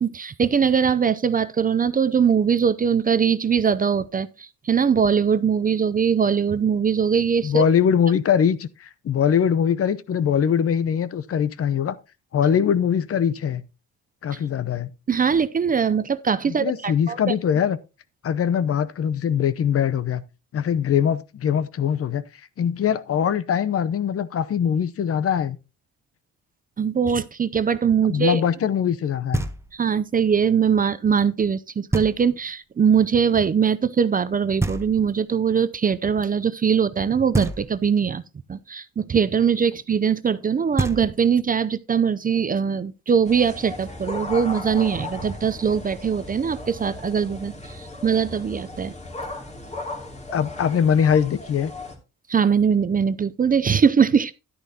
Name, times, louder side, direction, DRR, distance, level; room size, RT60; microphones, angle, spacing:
voice 1, 0.0-7.6 15.1-17.3 26.8-28.4 29.7-38.2 38.5-48.9 52.3-54.3, right 7 dB, 30° right, 0.5 m, -21 dB
voice 2, 7.4-12.0 12.3-13.6 14.2-14.9 16.5-17.8 18.2-20.2 20.5-22.2 22.6-25.6 28.1-29.4 50.3-51.7, left 8 dB, 50° left, 0.8 m, -22 dB
Knock, 29.3-30.0 31.9-32.6 34.6-35.4 37.3-38.1 40.4-40.5 40.8-41.6, right 2 dB, 10° right, 1.0 m, -28 dB
sound 1, 43.2-52.0, left 2 dB, 20° left, 2.6 m, -36 dB
11.0 x 9.9 x 2.8 m
cardioid pair, 90°, 30 cm